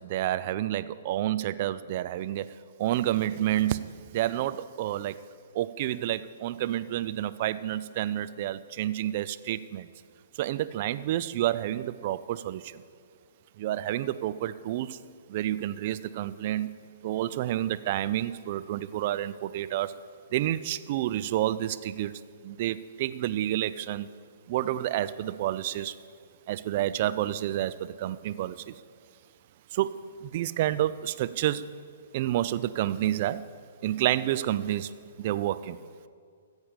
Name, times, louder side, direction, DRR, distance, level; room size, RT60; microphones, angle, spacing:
voice 1, 0.0-2.5 2.8-5.2 5.5-9.9 10.3-12.8 13.6-15.0 15.3-16.7 17.0-19.9 20.3-22.1 22.4-24.1 24.5-26.0 26.5-28.8 29.7-31.6 32.1-33.4 33.8-34.9 35.2-35.8, right 13 dB, 45° right, 14 dB, 0.5 m, -29 dB
14.0 x 8.0 x 7.0 m, 2.1 s
figure-of-eight pair, 120°, 0 cm